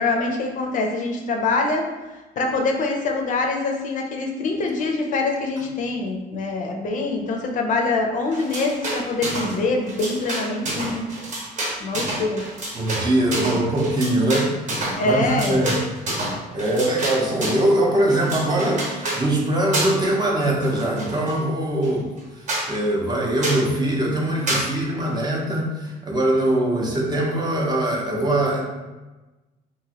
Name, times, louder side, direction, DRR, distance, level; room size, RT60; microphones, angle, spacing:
voice 1, 0.0-1.9 2.4-11.0 11.8-12.4 15.0-15.7, left 3 dB, 50° left, 2 dB, 0.5 m, -24 dB
sound 1, 8.3-9.6 9.8-17.7 18.1-19.2 19.7-20.1 20.4-21.4 21.8-21.9 22.2-22.3 22.5-22.7 23.4-23.7 24.5-24.7, right 1 dB, 45° right, 0.9 m, -28 dB
voice 2, 12.7-14.5 15.0-15.8 16.5-22.1 22.6-28.6, right 1 dB, 25° right, -1 dB, 0.6 m, -22 dB
2.9 x 2.5 x 2.8 m, 1.1 s
cardioid pair, 110°, 17 cm